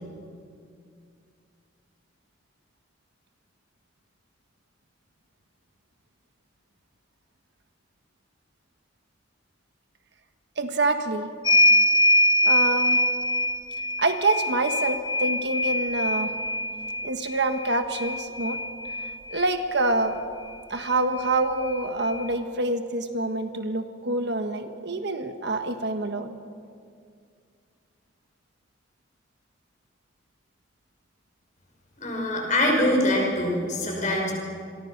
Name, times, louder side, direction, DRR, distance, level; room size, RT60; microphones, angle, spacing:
voice 1, 10.6-11.3 12.4-13.0 14.0-16.3 17.0-18.6 19.3-20.2 20.7-26.3 32.5-32.8, right 2 dB, 60° right, 7 dB, 1.5 m, -26 dB
sound 1, 11.4-19.6 20.8-20.9 21.2-22.3, left 1 dB, 20° left, 0.6 m, -24 dB
voice 2, 32.0-34.3, left 1 dB, 40° left, 0 dB, 6.3 m, -24 dB
28.0 x 23.0 x 6.0 m, 2.3 s
head